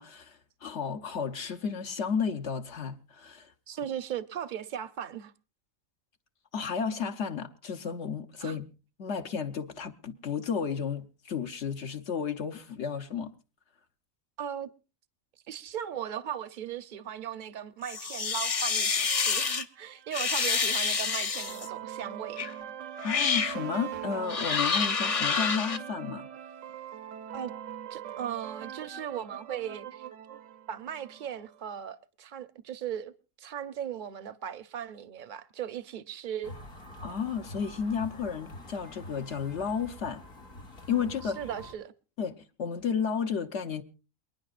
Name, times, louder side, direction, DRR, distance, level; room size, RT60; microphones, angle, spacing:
voice 1, 0.0-3.5 6.5-8.7 9.0-13.3 23.0-26.3 37.0-40.2 40.9-41.4 42.2-43.8, left 6 dB, 60° left, 1.2 m, -32 dB
voice 2, 3.7-5.3 8.4-8.6 14.4-14.7 15.5-22.5 27.3-27.5 27.9-30.1 30.7-33.1 33.4-36.5 41.2-41.9, right 9 dB, 45° right, 0.8 m, -38 dB
sound 1, 17.8-19.6 20.1-21.7 22.4-22.5 23.0-23.6 24.3-25.8, left 5 dB, 35° left, 0.6 m, -28 dB
sound 2, 19.8-31.6, right 10 dB, 75° right, 1.2 m, -42 dB
sound 3, 36.4-41.7, left 1 dB, 85° left, 2.7 m, -46 dB
28.5 x 9.9 x 2.5 m
omnidirectional pair, 1.4 m